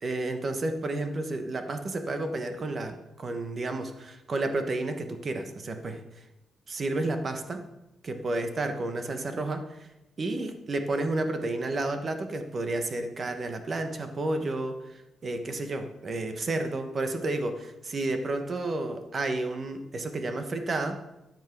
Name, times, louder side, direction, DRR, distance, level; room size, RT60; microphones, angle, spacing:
voice 1, 0.0-6.2 6.7-7.6 8.0-9.9 10.2-21.0, right 2 dB, 30° right, 7 dB, 1.1 m, -31 dB
12.5 x 7.4 x 6.0 m, 0.94 s
wide cardioid pair, 170°, 0 cm